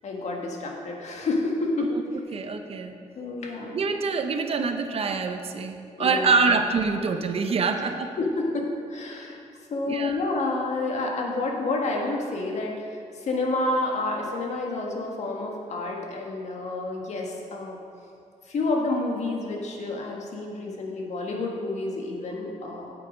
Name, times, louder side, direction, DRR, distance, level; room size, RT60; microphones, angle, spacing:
voice 1, 0.0-1.9 2.3-2.4 3.1-3.8 6.0-6.5 7.7-7.9 8.2-9.4 9.7-17.8 18.4-22.9, left 2 dB, 60° left, 0 dB, 1.6 m, -29 dB
voice 2, 2.3-2.9 3.7-8.1 9.8-10.2, right 4 dB, 50° right, 6 dB, 0.7 m, -25 dB
8.4 x 7.9 x 5.1 m, 2.4 s
cardioid pair, 120°, 13 cm